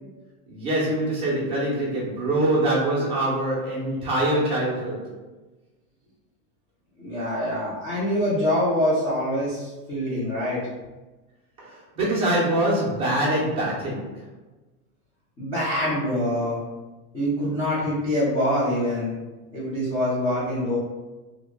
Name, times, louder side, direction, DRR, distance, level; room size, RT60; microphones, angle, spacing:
voice 1, 0.5-5.2 11.6-14.3, right 1 dB, 15° right, -7 dB, 0.7 m, -24 dB
voice 2, 7.0-10.6 15.4-16.6 17.1-19.1 19.5-20.8, equal, 10° left, -12 dB, 0.4 m, -25 dB
3.0 x 2.4 x 3.5 m, 1.2 s
supercardioid pair, 165°, 44 cm